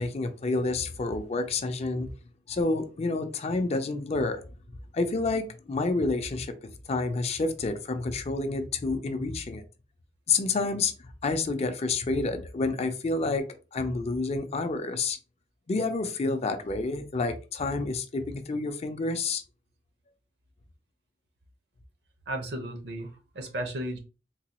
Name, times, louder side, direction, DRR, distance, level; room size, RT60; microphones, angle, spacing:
voice 1, 0.0-2.1 2.5-4.4 4.9-6.6 6.9-9.6 10.3-10.9 11.2-13.5 13.7-15.2 15.7-19.4, left 3 dB, 35° left, 0.4 m, -29 dB
voice 2, 22.3-24.0, right 1 dB, 70° right, 0.8 m, -34 dB
3.9 x 2.2 x 2.9 m
head